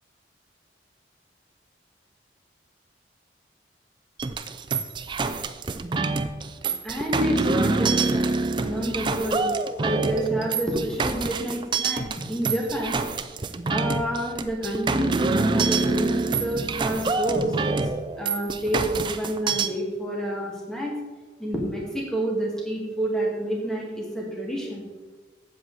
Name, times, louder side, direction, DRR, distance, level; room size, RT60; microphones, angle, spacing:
sound 1, 4.2-19.7, right 3 dB, 25° right, 0.3 m, -26 dB
voice 1, 6.8-8.3 8.6-9.5 9.8-13.0 13.7-17.5 18.2-20.9 21.4-24.8, right 1 dB, 5° left, -3 dB, 1.6 m, -28 dB
8.2 x 7.7 x 3.9 m, 1.3 s
head